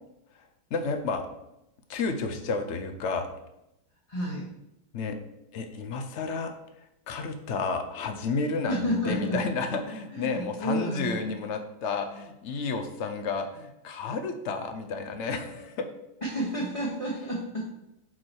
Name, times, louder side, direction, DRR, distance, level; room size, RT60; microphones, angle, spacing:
voice 1, 0.7-1.2 1.9-3.3 4.9-5.2 5.5-6.5 7.1-15.9, left 4 dB, 65° left, 6 dB, 0.7 m, -31 dB
voice 2, 4.1-4.5 8.7-9.4 10.1-11.2 16.2-17.7, equal, 25° left, -5 dB, 1.0 m, -30 dB
6.2 x 4.7 x 4.4 m, 0.86 s
omnidirectional pair, 2.0 m